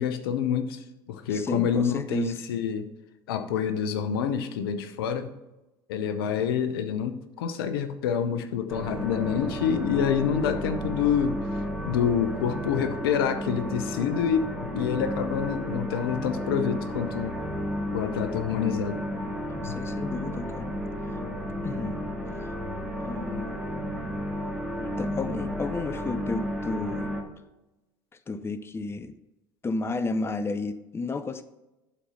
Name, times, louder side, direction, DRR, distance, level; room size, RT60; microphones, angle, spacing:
voice 1, 0.0-2.9 3.3-5.3 5.9-11.4 11.8-17.4 17.9-19.0 19.6-19.8, left 8 dB, 75° left, 0.8 m, -27 dB
voice 2, 1.3-2.3 19.5-20.7 21.6-22.0 23.0-23.5 24.8-27.1 28.3-29.1 29.6-31.4, left 3 dB, 20° left, 0.6 m, -32 dB
sound 1, 8.7-27.2, equal, ahead, 1.8 m, -32 dB
11.5 x 4.3 x 5.5 m
hypercardioid pair, 75°, 13 cm